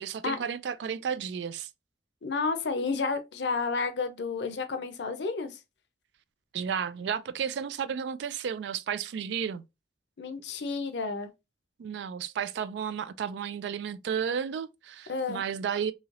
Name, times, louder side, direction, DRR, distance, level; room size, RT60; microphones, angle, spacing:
voice 1, 0.0-1.7 6.5-9.6 11.8-15.9, right 7 dB, 70° right, 0.3 m, -33 dB
voice 2, 2.2-5.6 10.2-11.3 15.1-15.4, left 4 dB, 70° left, 0.5 m, -31 dB
3.1 x 2.8 x 2.4 m
head